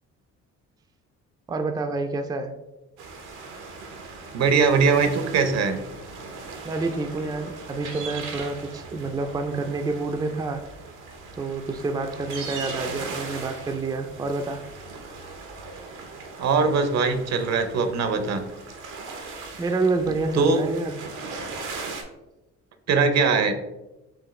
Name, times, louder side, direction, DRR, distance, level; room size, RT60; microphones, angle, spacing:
voice 1, 1.5-2.5 6.6-10.6 11.3-14.6 19.6-21.0, right 3 dB, 15° right, 6 dB, 0.3 m, -28 dB
sound 1, 3.0-22.0, right 4 dB, 90° right, 0.8 m, -39 dB
voice 2, 4.3-5.8 16.4-18.5 20.3-20.6 22.9-23.5, right 4 dB, 60° right, 8 dB, 0.6 m, -21 dB
4.7 x 2.8 x 3.1 m, 0.98 s
cardioid pair, 90°, 30 cm